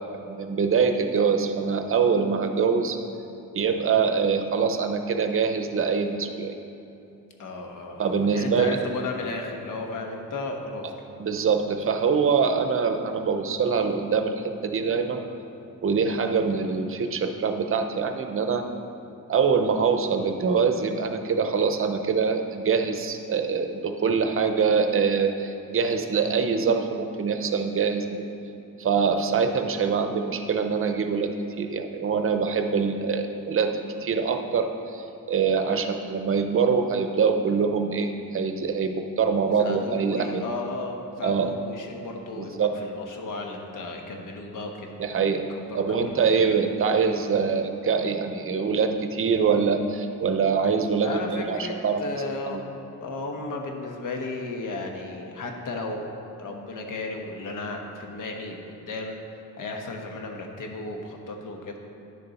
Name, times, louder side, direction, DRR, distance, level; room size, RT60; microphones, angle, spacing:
voice 1, 0.1-3.0 3.5-6.5 8.0-8.8 11.2-15.2 15.8-18.6 19.3-28.3 28.8-40.4 41.2-41.5 42.4-42.7 45.0-45.4 45.7-52.6, right 5 dB, 40° right, 6 dB, 0.6 m, -24 dB
voice 2, 7.4-11.1 24.2-24.3 35.6-35.9 39.6-44.9 45.5-46.5 51.0-52.6 53.0-56.1 56.4-59.1 59.5-61.8, left 3 dB, 75° left, 2 dB, 1.2 m, -34 dB
10.0 x 6.7 x 4.1 m, 2.8 s
wide cardioid pair, 135°, 32 cm